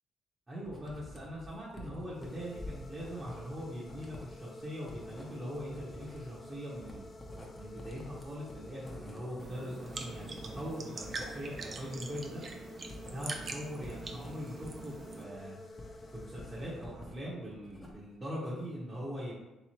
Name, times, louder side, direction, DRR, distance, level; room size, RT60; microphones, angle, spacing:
voice 1, 0.5-7.1 7.5-12.4 13.1-15.6 16.1-19.3, equal, 20° right, -8 dB, 1.0 m, -41 dB
Writing, 0.6-17.2 17.5-18.2, left 1 dB, 15° left, 0.8 m, -49 dB
sound 1, 2.1-17.3, left 2 dB, 35° left, 0.4 m, -51 dB
sound 2, 9.4-15.2, right 4 dB, 35° right, 0.5 m, -44 dB
3.4 x 3.1 x 4.4 m, 1.0 s
cardioid pair, 110°, 0 cm